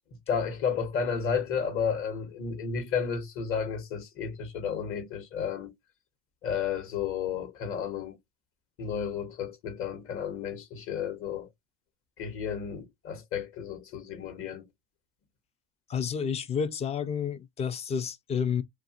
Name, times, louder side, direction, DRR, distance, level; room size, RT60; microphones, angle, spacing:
voice 1, 0.3-5.7 6.4-8.2 8.8-11.5 12.2-14.6, left 7 dB, 45° left, 1.1 m, -32 dB
voice 2, 15.9-18.6, left 7 dB, 20° left, 0.3 m, -30 dB
2.8 x 2.5 x 2.7 m
supercardioid pair, 125°, 31 cm